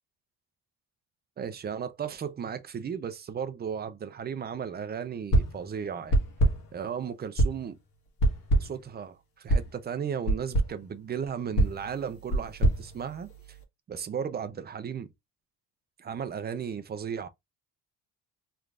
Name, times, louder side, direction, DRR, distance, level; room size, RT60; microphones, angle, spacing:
voice 1, 1.4-6.2 6.7-7.8 8.6-13.3 13.9-15.1 16.0-17.3, right 7 dB, 25° right, 0.4 m, -35 dB
sound 1, 5.3-5.7 6.1-6.8 7.4-7.7 8.2-8.9 9.5-9.8 10.3-10.8 11.6-13.6, right 1 dB, 60° left, 1.4 m, -26 dB
3.7 x 3.2 x 2.4 m
cardioid pair, 145°, 38 cm